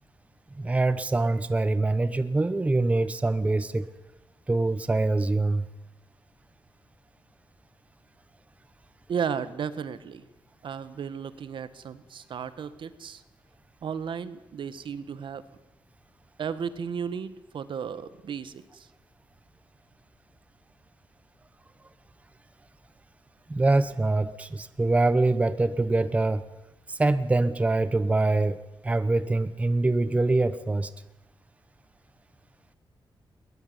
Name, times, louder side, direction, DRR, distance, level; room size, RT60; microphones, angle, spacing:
voice 1, 0.6-3.9 4.5-5.7 23.5-26.4 26.9-30.9, right 2 dB, 15° right, 14 dB, 0.8 m, -24 dB
voice 2, 9.1-10.3 10.6-13.2 13.8-15.4 16.4-18.9, right 7 dB, 70° right, 14 dB, 1.5 m, -34 dB
21.0 x 20.5 x 9.8 m, 0.94 s
wide cardioid pair, 170°, 9 cm